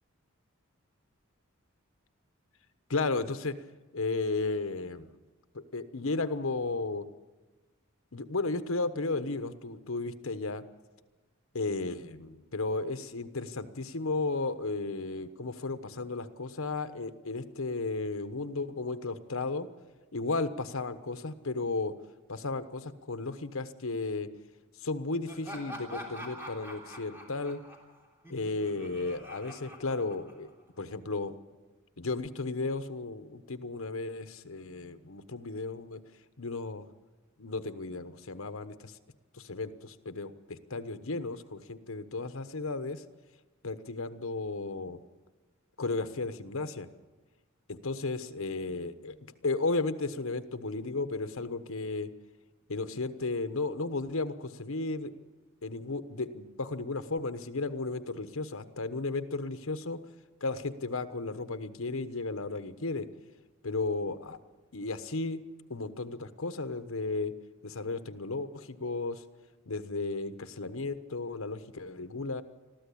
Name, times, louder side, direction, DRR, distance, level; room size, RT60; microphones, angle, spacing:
voice 1, 2.9-3.6 3.9-5.1 5.5-7.1 8.1-10.6 11.5-19.7 20.1-21.9 22.3-24.3 24.8-27.6 28.3-30.5 30.8-31.3 32.0-36.0 36.4-36.8 37.4-38.9 39.3-43.0 43.6-45.0 45.8-46.9 47.7-52.1 52.7-55.1 55.6-60.0 60.4-63.1 63.6-64.4 64.7-65.4 65.7-67.3 67.6-69.2 69.7-72.4, left 3 dB, 75° left, 10 dB, 1.1 m, -34 dB
Laughter, 25.3-30.7, equal, 10° right, 3.5 m, -45 dB
21.0 x 14.5 x 8.6 m, 1.2 s
head